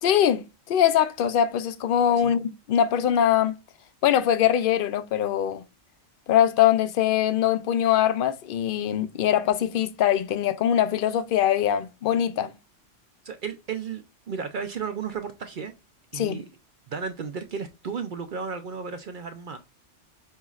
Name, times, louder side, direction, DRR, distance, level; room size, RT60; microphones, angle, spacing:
voice 1, 0.0-3.5 4.0-5.6 6.3-12.5 16.1-16.4, left 10 dB, 60° left, 0.6 m, -22 dB
voice 2, 13.2-15.7 16.1-16.5 16.9-19.6, right 6 dB, 55° right, 0.6 m, -34 dB
5.4 x 3.1 x 2.3 m
omnidirectional pair, 1.3 m